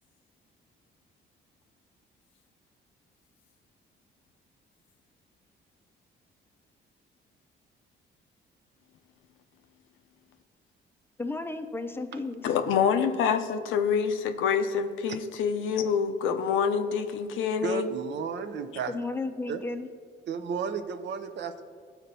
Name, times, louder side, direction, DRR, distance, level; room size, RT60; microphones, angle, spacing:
voice 1, 11.2-12.5 18.9-19.9, left 3 dB, 10° left, 7 dB, 0.5 m, -33 dB
voice 2, 12.4-17.9, left 6 dB, 85° left, 7 dB, 0.5 m, -26 dB
voice 3, 17.6-18.9 19.5-19.6 20.3-21.6, right 6 dB, 65° right, 9 dB, 0.5 m, -33 dB
12.5 x 4.4 x 2.7 m, 2.1 s
cardioid pair, 90°, 20 cm